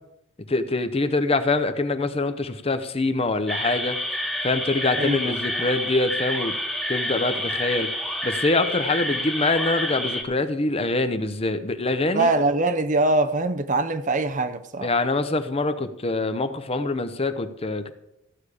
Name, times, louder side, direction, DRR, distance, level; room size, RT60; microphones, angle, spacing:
voice 1, 0.5-4.0 4.4-6.5 6.9-7.9 8.2-12.3 14.8-17.9, left 2 dB, 30° left, 0.7 m, -24 dB
sound 1, 3.5-10.2, equal, ahead, 1.2 m, -28 dB
voice 2, 5.0-5.3 12.1-14.9, right 2 dB, 40° right, 0.7 m, -23 dB
14.0 x 8.4 x 4.9 m
head